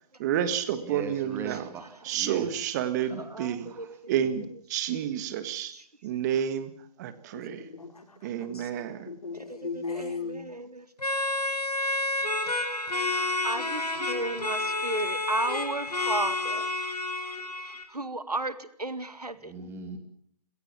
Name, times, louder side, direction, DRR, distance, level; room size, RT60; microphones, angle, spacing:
voice 1, 0.2-1.7 2.0-3.7 4.1-5.7 6.0-6.7 7.0-7.7 8.2-9.1, right 9 dB, 30° right, 1.7 m, -30 dB
voice 2, 0.8-2.5 3.6-3.9 19.4-20.0, right 5 dB, 10° right, 2.7 m, -40 dB
voice 3, 3.3-3.9 5.7-5.8 9.9-10.8 13.1-16.7 17.6-19.7, right 2 dB, 85° right, 2.1 m, -34 dB
voice 4, 7.3-10.4, left 4 dB, 75° left, 4.1 m, -38 dB
sound 1, 11.0-17.8, left 2 dB, 90° left, 5.1 m, -30 dB
28.5 x 17.5 x 7.5 m
figure-of-eight pair, 140°, 20 cm